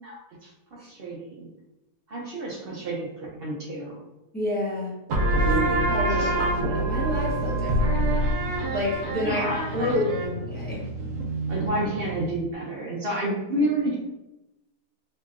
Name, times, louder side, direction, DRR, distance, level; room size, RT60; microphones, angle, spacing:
voice 1, 0.0-1.5 2.1-4.0 5.4-6.3 9.2-9.9 11.5-13.9, right 1 dB, 65° right, -3 dB, 0.5 m, -30 dB
voice 2, 4.3-4.9 5.4-6.3 6.6-8.0 8.7-9.4 9.7-10.8, left 1 dB, 10° left, -7 dB, 0.5 m, -29 dB
sound 1, 5.1-12.4, right 1 dB, 85° right, 1.1 m, -26 dB
3.0 x 2.6 x 2.4 m, 0.96 s
omnidirectional pair, 1.6 m